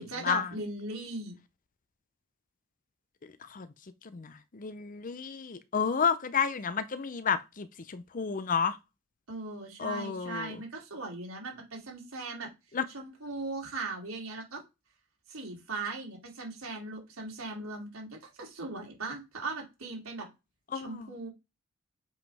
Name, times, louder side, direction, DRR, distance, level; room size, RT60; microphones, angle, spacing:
voice 1, 0.0-1.4 9.3-12.5 12.9-14.6 15.3-20.3 20.7-21.3, right 3 dB, 80° right, 2.9 m, -39 dB
voice 2, 3.2-3.7 4.0-8.8 9.8-10.6 12.7-12.8 20.7-21.1, left 6 dB, 40° left, 0.6 m, -31 dB
7.6 x 5.1 x 3.5 m
head